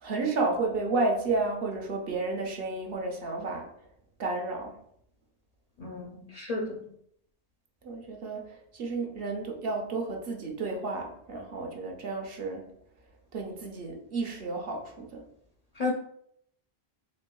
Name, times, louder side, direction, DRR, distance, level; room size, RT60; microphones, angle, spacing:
voice 1, 0.0-3.7 4.2-4.7 7.8-8.5 8.7-12.6 13.3-15.2, right 3 dB, 65° right, 2 dB, 0.9 m, -31 dB
voice 2, 5.8-6.9 15.8-15.9, left 3 dB, 50° left, 0 dB, 0.5 m, -33 dB
4.3 x 3.3 x 2.3 m, 0.70 s
omnidirectional pair, 1.1 m